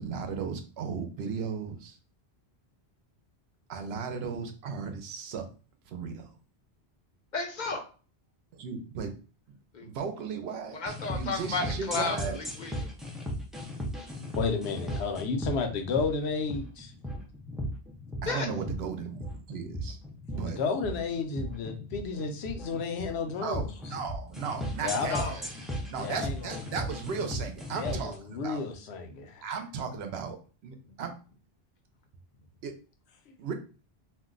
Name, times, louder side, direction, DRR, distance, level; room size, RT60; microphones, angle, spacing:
voice 1, 0.0-2.0 3.7-5.5 5.9-6.3 8.5-9.1 9.8-10.8 11.1-12.4 18.2-20.0 20.4-20.6 23.4-25.4 25.9-28.6 29.4-31.1 32.6-32.8 33.4-33.5, right 6 dB, 75° right, 6 dB, 0.9 m, -36 dB
voice 2, 7.3-7.8 9.7-9.9 10.7-12.9 18.2-18.5 25.1-25.4, left 3 dB, 55° left, 4 dB, 0.6 m, -33 dB
sound 1, 10.9-28.1, equal, ahead, 0.3 m, -36 dB
voice 3, 14.4-16.9 20.3-23.7 24.8-25.2 25.9-26.6 27.7-29.5, left 4 dB, 80° left, 5 dB, 0.9 m, -32 dB
2.6 x 2.1 x 3.7 m, 0.36 s
omnidirectional pair, 1.1 m